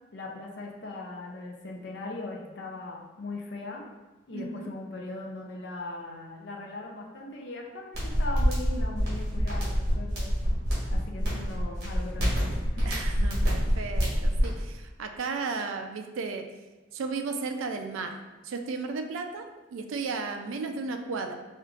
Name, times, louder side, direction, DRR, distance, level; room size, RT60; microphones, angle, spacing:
voice 1, 0.1-3.8 4.3-10.3 10.9-12.9, left 2 dB, 55° left, 0 dB, 0.5 m, -39 dB
voice 2, 4.3-4.7 12.9-16.5 16.9-18.2 18.4-21.3, right 4 dB, 75° right, 6 dB, 0.3 m, -34 dB
sound 1, 7.9-14.5, equal, 50° right, 1.2 m, -26 dB
4.4 x 2.4 x 2.4 m, 1.2 s
head